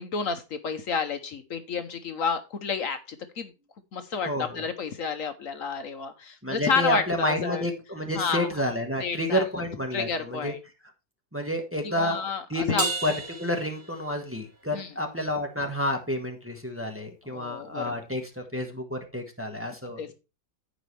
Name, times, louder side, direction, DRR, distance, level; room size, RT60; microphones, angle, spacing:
voice 1, 0.0-3.5 3.9-7.6 8.1-8.5 9.0-9.4 9.9-10.6 11.8-12.8 14.7-14.9 17.3-17.9 20.0-20.1, left 5 dB, 65° left, 9 dB, 1.2 m, -30 dB
voice 2, 4.3-4.6 6.4-10.5 11.3-12.2 12.5-20.0, left 1 dB, 10° right, 3 dB, 1.4 m, -30 dB
Crash cymbal, 12.8-14.5, right 3 dB, 80° right, 2.5 m, -32 dB
14.5 x 5.2 x 3.3 m, 0.29 s
omnidirectional pair, 1.6 m